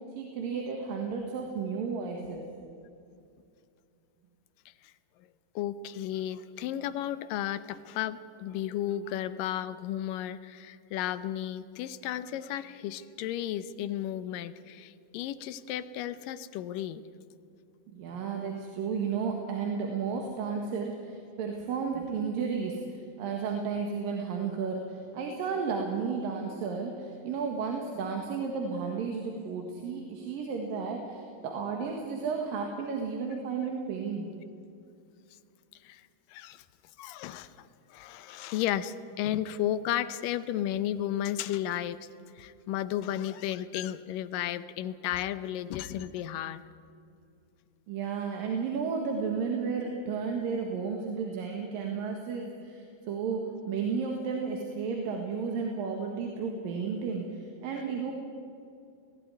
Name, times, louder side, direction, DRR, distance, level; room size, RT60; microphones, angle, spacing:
voice 1, 0.2-2.4 17.9-34.3 47.9-58.1, right 5 dB, 90° right, 2 dB, 3.4 m, -33 dB
voice 2, 5.6-17.0 18.1-18.2 35.8-36.6 37.0-42.1 42.4-46.6, left 11 dB, 80° left, 13 dB, 2.4 m, -34 dB
19.0 x 15.5 x 9.8 m, 2.5 s
omnidirectional pair, 3.9 m